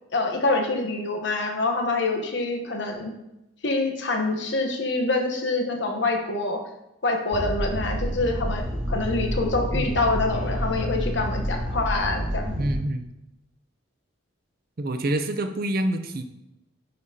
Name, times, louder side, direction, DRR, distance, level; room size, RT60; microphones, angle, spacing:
voice 1, 0.1-3.1 3.6-6.6 7.0-12.5, left 2 dB, 60° left, 3 dB, 1.0 m, -26 dB
sound 1, 7.3-12.8, equal, 5° right, 2.0 m, -28 dB
voice 2, 12.6-13.1 14.8-16.2, right 1 dB, 45° right, 7 dB, 0.5 m, -27 dB
9.6 x 5.2 x 2.8 m, 0.92 s
head